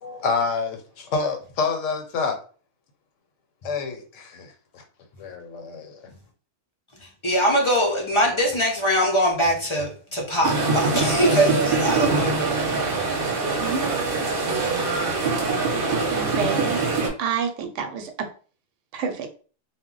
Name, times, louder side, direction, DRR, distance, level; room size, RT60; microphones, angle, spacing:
voice 1, 0.0-2.4 3.6-4.8 5.2-6.0, left 4 dB, 85° left, 1.0 m, -28 dB
voice 2, 7.2-12.5 12.9-13.0, equal, 40° left, 0.4 m, -22 dB
sound 1, 10.4-17.1, right 3 dB, 55° right, 0.8 m, -23 dB
voice 3, 16.1-16.8 17.2-18.1 18.9-19.3, right 7 dB, 80° right, 0.9 m, -28 dB
2.1 x 2.1 x 3.7 m
omnidirectional pair, 1.3 m